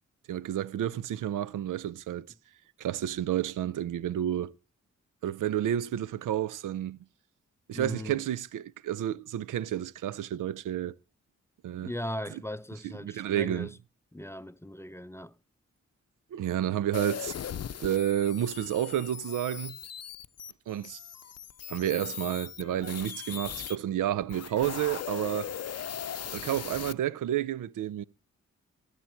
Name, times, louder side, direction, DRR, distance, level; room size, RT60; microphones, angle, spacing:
voice 1, 0.3-2.3 2.8-4.5 5.2-7.0 7.7-10.9 11.6-11.9 12.8-13.7 16.3-17.4 17.8-19.8 20.7-21.0 21.7-25.5 26.3-28.0, right 11 dB, 85° right, 0.5 m, -30 dB
voice 2, 7.7-8.2 11.8-13.8 14.1-15.4, left 1 dB, 10° left, 0.6 m, -38 dB
sound 1, 16.9-23.8 24.2-26.9, left 9 dB, 55° left, 0.6 m, -39 dB
14.5 x 8.3 x 4.4 m
supercardioid pair, 45°, 31 cm